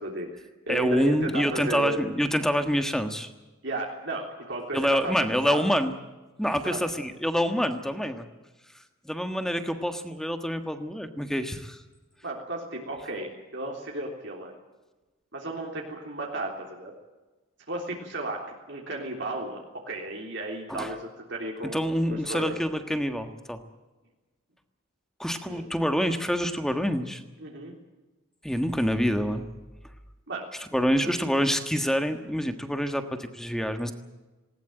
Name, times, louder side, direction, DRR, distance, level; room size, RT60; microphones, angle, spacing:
voice 1, 0.0-2.0 3.6-5.2 5.5-5.6 6.6-6.8 12.2-14.5 15.3-16.9 17.7-21.9 22.3-22.6 25.5-25.7 27.4-27.7 30.3-30.4, right 1 dB, 55° right, 0 dB, 3.5 m, -34 dB
voice 2, 0.7-3.3 4.7-5.9 6.4-8.3 9.0-11.8 20.7-20.9 21.7-23.6 25.2-27.2 28.4-29.5 30.7-33.9, equal, ahead, 7 dB, 1.5 m, -26 dB
19.5 x 19.0 x 9.1 m, 1.2 s
head